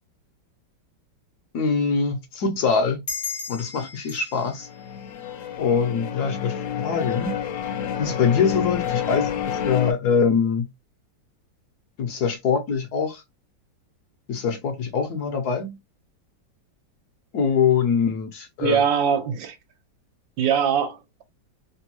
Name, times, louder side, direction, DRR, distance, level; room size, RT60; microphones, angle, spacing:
voice 1, 1.5-3.0 3.5-4.7 5.6-7.4 8.0-10.7 12.0-13.2 14.3-15.8 17.3-18.8, left 6 dB, 70° left, 1.1 m, -23 dB
sound 1, 3.1-6.2, left 5 dB, 35° left, 0.7 m, -37 dB
sound 2, 4.6-9.9, left 8 dB, 85° left, 0.7 m, -29 dB
voice 2, 18.6-19.6 20.4-21.2, right 8 dB, 80° right, 1.5 m, -22 dB
3.4 x 2.3 x 2.9 m
omnidirectional pair, 2.0 m